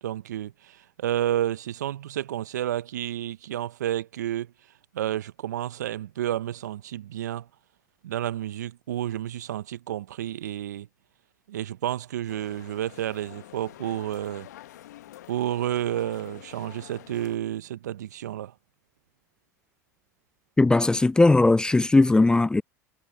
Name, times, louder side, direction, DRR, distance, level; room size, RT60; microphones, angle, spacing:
voice 1, 0.0-4.5 4.9-7.5 8.0-10.9 11.5-14.5 15.3-18.5, right 12 dB, 80° right, 0.7 m, -30 dB
sound 1, 12.3-17.4, left 14 dB, 75° left, 1.2 m, -47 dB
voice 2, 20.6-22.6, left 2 dB, 10° left, 0.3 m, -18 dB
hypercardioid pair, 80°, 9 cm